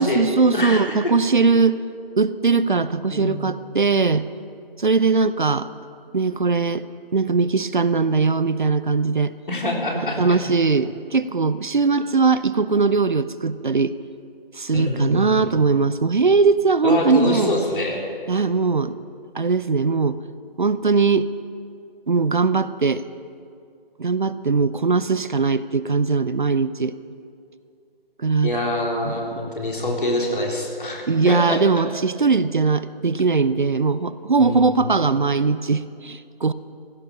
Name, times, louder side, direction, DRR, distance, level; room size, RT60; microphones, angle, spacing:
voice 1, 0.0-1.8 2.2-4.3 4.8-5.7 6.1-6.8 7.1-9.3 10.2-13.9 14.6-17.5 18.3-19.0 19.3-20.2 20.6-21.3 22.1-23.0 24.0-26.9 28.2-28.5 29.0-29.2 31.1-36.5, right 4 dB, 55° right, 15 dB, 0.6 m, -20 dB
voice 2, 0.5-0.9 3.1-3.4 9.5-10.4 14.7-15.5 16.8-18.0 28.4-31.6 34.4-34.7, left 1 dB, 60° left, -1 dB, 3.6 m, -25 dB
16.5 x 13.0 x 5.7 m, 2.4 s
figure-of-eight pair, 160°, 29 cm